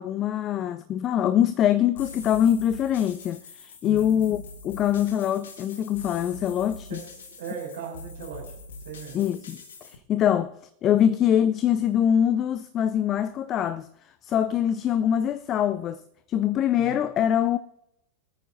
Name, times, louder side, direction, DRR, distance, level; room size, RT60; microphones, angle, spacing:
voice 1, 0.0-7.0 9.1-9.6 10.1-10.5 10.8-13.9 14.2-16.0 16.3-17.6, left 10 dB, 30° left, 0.4 m, -23 dB
sound 1, 2.0-10.0, left 3 dB, 65° left, 1.5 m, -43 dB
voice 2, 3.8-4.2 6.9-7.0 7.4-8.4 8.8-9.2 16.8-17.0, right 7 dB, 60° right, 3.9 m, -37 dB
23.5 x 9.1 x 2.6 m
figure-of-eight pair, 90°, 0 cm